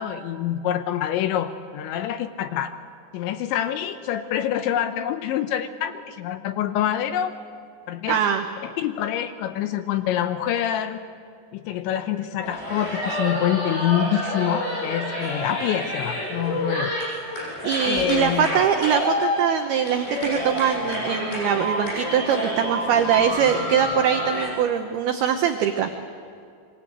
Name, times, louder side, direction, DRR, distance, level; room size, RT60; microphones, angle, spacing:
voice 1, 0.0-2.7 3.1-7.3 7.9-8.2 8.6-11.0 11.5-16.9 17.9-18.5, left 11 dB, 75° left, 9 dB, 3.0 m, -26 dB
voice 2, 8.1-8.4 17.6-25.9, right 8 dB, 75° right, 6 dB, 2.4 m, -22 dB
sound 1, 12.4-24.5, left 1 dB, 60° left, 10.5 m, -28 dB
25.5 x 24.0 x 8.1 m, 2.4 s
omnidirectional pair, 5.7 m